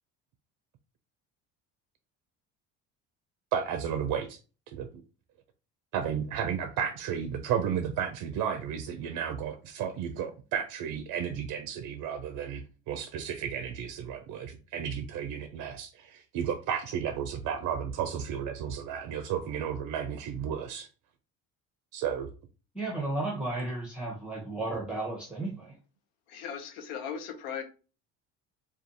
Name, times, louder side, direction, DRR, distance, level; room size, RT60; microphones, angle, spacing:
voice 1, 3.5-4.4 4.8-4.9 5.9-20.9 21.9-22.3, right 8 dB, 55° right, 0.4 m, -33 dB
voice 2, 22.7-25.7, right 2 dB, 5° right, 0.7 m, -33 dB
voice 3, 26.3-27.6, left 7 dB, 80° left, 0.7 m, -37 dB
2.4 x 2.3 x 2.6 m
hypercardioid pair, 75°, 39 cm